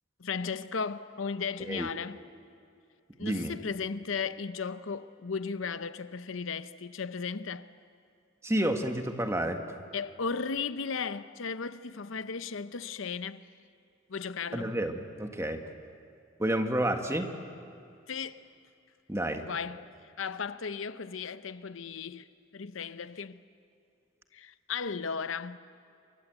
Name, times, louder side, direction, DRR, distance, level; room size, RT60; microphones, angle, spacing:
voice 1, 0.2-2.2 3.2-7.7 9.9-13.5 14.1-14.7 18.1-18.4 19.4-19.9 20.2-22.3 22.5-23.4 24.3-25.6, left 5 dB, 80° left, 0.7 m, -35 dB
voice 2, 3.2-3.5 8.4-9.6 14.5-15.6 16.4-17.3 19.1-19.5, right 1 dB, 15° right, 1.6 m, -30 dB
28.0 x 23.5 x 8.0 m
head